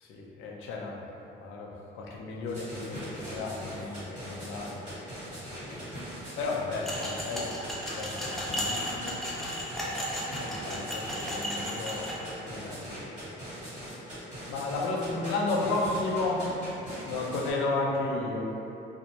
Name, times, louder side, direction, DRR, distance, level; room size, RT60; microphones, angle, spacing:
voice 1, 0.0-1.0 1.4-4.9 5.3-5.8 6.4-9.2 9.8-13.5 14.5-16.5 17.0-18.6, left 2 dB, 90° left, -1 dB, 0.4 m, -33 dB
sound 1, 2.5-17.5, equal, 35° right, 1.4 m, -41 dB
sound 2, 6.8-12.1, equal, ahead, 0.4 m, -34 dB
2.5 x 2.0 x 2.8 m, 3.0 s
cardioid pair, 90°, 20 cm